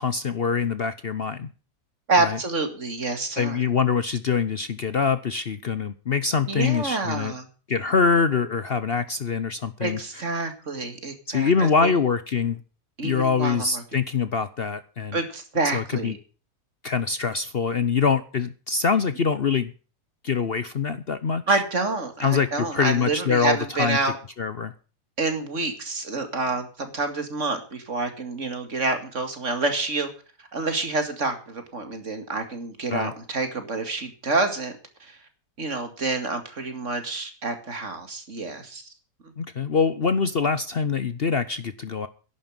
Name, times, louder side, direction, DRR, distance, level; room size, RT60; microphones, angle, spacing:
voice 1, 0.0-1.5 2.2-2.4 3.4-7.3 7.7-10.0 11.3-12.6 13.0-15.2 15.7-16.1 16.8-19.7 20.2-21.6 22.2-24.0 24.4-24.7 32.9-33.1 39.4-42.1, left 5 dB, 50° left, 13 dB, 0.8 m, -24 dB
voice 2, 2.1-3.6 6.5-7.5 9.8-11.9 13.0-13.8 15.1-16.2 21.5-24.2 25.2-30.1 30.5-34.7 35.0-35.2 35.6-38.8, right 3 dB, 50° right, 7 dB, 2.5 m, -28 dB
11.0 x 9.7 x 8.9 m, 0.38 s
omnidirectional pair, 1.7 m